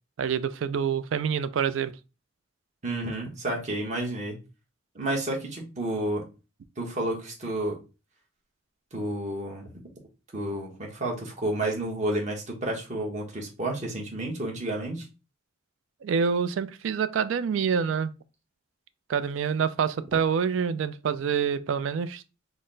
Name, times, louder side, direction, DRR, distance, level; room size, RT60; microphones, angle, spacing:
voice 1, 0.2-1.9 16.0-18.1 19.1-22.2, right 6 dB, 75° right, 0.3 m, -26 dB
voice 2, 2.8-4.4 4.9-6.2 6.8-7.8 8.9-9.7 10.3-15.1, right 1 dB, 40° right, 1.1 m, -30 dB
4.0 x 2.1 x 3.8 m
head